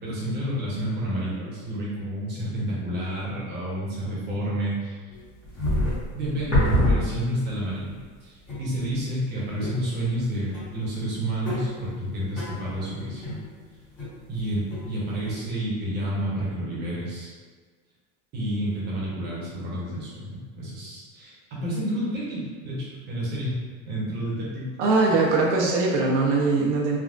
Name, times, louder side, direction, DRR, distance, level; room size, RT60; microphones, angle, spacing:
voice 1, 0.0-5.0 6.1-13.4 14.3-17.3 18.3-23.6 23.9-24.7, equal, 30° right, -6 dB, 0.9 m, -30 dB
sound 1, 5.1-7.6 8.0-8.1 8.5-9.0 9.6-10.3 10.5-14.4 14.7-15.3, equal, 20° left, 1.1 m, -28 dB
voice 2, 24.8-27.0, right 3 dB, 85° right, -3 dB, 0.8 m, -21 dB
3.4 x 2.2 x 2.4 m, 1.5 s
cardioid pair, 160°, 35 cm